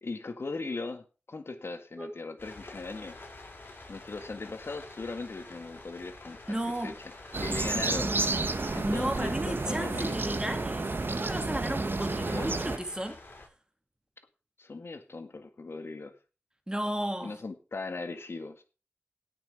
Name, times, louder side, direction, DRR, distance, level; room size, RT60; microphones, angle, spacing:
voice 1, 0.0-3.2 3.9-6.9 7.4-8.1 8.7-10.3 12.2-12.6 14.6-16.1 17.2-18.6, left 3 dB, 65° left, 1.7 m, -39 dB
sound 1, 2.4-13.5, left 2 dB, 50° left, 6.2 m, -48 dB
voice 2, 6.5-6.9 8.8-13.2 16.7-17.4, right 1 dB, 15° right, 2.5 m, -34 dB
sound 2, 7.3-12.8, right 3 dB, 50° right, 1.3 m, -31 dB
17.0 x 6.1 x 4.8 m
cardioid pair, 50°, 4 cm